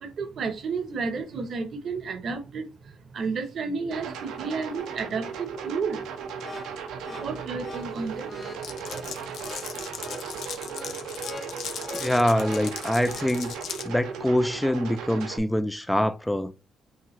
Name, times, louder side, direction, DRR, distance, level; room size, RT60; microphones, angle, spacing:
voice 1, 0.0-2.7 3.1-6.0 7.2-8.3 8.7-9.3 11.8-11.9, right 4 dB, 55° right, 0.8 m, -32 dB
sound 1, 3.9-15.4, right 6 dB, 90° right, 0.6 m, -37 dB
sound 2, 6.4-13.3, left 3 dB, 30° left, 0.7 m, -43 dB
Glass, 8.6-13.9, left 8 dB, 75° left, 0.6 m, -38 dB
voice 2, 11.9-13.6 13.8-16.5, left 1 dB, 5° left, 0.3 m, -24 dB
5.7 x 2.4 x 3.0 m
cardioid pair, 90°, 0 cm